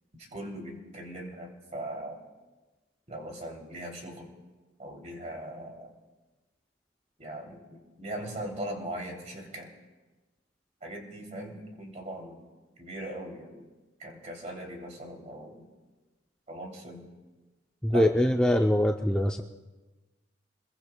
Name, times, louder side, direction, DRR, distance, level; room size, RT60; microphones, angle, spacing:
voice 1, 0.2-2.2 3.1-4.3 4.8-5.9 7.2-9.7 10.8-12.5 12.8-13.7 14.0-15.7 16.5-17.1 17.9-18.3, right 1 dB, 35° right, 0 dB, 2.9 m, -40 dB
voice 2, 17.8-19.4, left 1 dB, 5° left, 2 dB, 0.5 m, -23 dB
27.5 x 22.0 x 2.2 m, 1.2 s
head